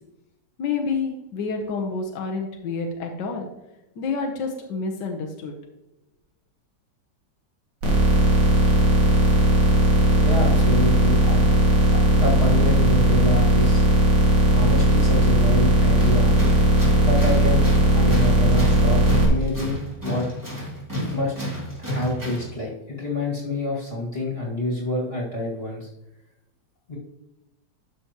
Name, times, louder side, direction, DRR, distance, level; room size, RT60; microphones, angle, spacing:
voice 1, 0.6-3.5 4.0-5.6, left 4 dB, 70° left, 1 dB, 1.6 m, -28 dB
sound 1, 7.8-19.2, right 1 dB, 90° right, 3.0 m, -18 dB
voice 2, 10.2-13.8 14.4-16.3 17.0-17.7 17.9-20.3 21.0-25.9 26.9-27.0, left 2 dB, 30° left, -4 dB, 2.5 m, -28 dB
Tools, 16.0-22.6, equal, 10° right, 2.5 m, -31 dB
12.5 x 6.9 x 3.0 m, 0.94 s
omnidirectional pair, 2.0 m